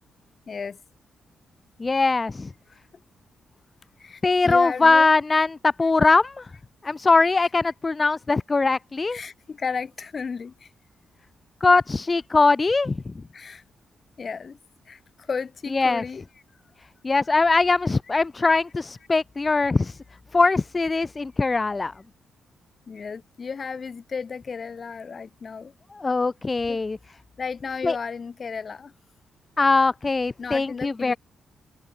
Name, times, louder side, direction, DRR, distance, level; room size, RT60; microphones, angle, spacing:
voice 1, 0.5-0.8 2.7-2.8 4.0-5.1 5.8-5.9 9.1-10.7 13.3-13.6 14.2-14.6 14.9-16.3 22.9-25.7 26.7-26.8 27.4-28.9 30.4-31.2, left 5 dB, 40° left, 4.7 m, -34 dB
voice 2, 1.8-2.5 4.2-6.5 6.8-9.2 11.6-13.0 15.7-16.0 17.0-20.0 20.3-21.9 26.0-27.0 27.8-27.9 29.6-31.1, left 3 dB, 25° left, 1.7 m, -21 dB
cardioid pair, 100°, 0 cm